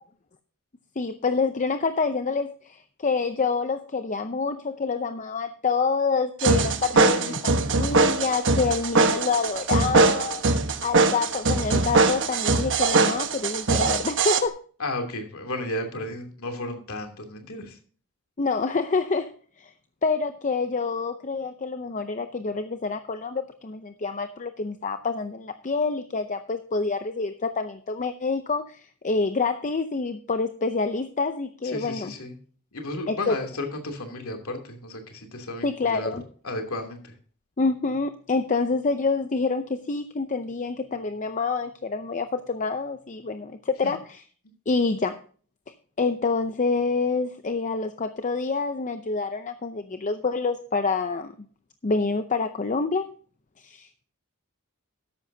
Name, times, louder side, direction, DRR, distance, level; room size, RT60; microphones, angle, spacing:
voice 1, 1.0-10.4 10.8-14.6 18.4-19.3 19.6-19.7 20.0-32.1 33.1-33.4 35.6-36.2 37.6-44.2 44.7-45.2 46.0-51.3 51.8-53.1 53.6-54.0, left 4 dB, 35° left, 9 dB, 0.6 m, -27 dB
sound 1, 6.4-14.4, right 3 dB, 55° right, 1.2 m, -22 dB
voice 2, 6.9-7.4 8.6-9.0 14.8-17.8 31.6-32.4 32.7-36.1 36.4-37.2 43.8-43.9, left 1 dB, 70° left, 4 dB, 2.9 m, -34 dB
13.5 x 11.0 x 2.8 m, 0.43 s
head